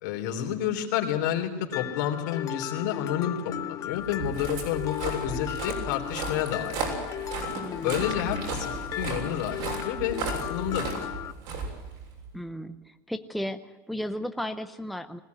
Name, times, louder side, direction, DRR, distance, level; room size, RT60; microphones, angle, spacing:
voice 1, 0.0-6.9 7.8-11.3, left 10 dB, 80° left, 3 dB, 3.4 m, -30 dB
Mallet percussion, 1.7-11.3, left 11 dB, 35° left, 0.7 m, -36 dB
Walk footsteps, 4.0-12.3, right 4 dB, 65° right, 6.7 m, -35 dB
voice 2, 7.5-8.2 12.3-15.2, equal, ahead, 7 dB, 0.7 m, -35 dB
21.0 x 16.5 x 9.5 m, 1.1 s
supercardioid pair, 145°, 10 cm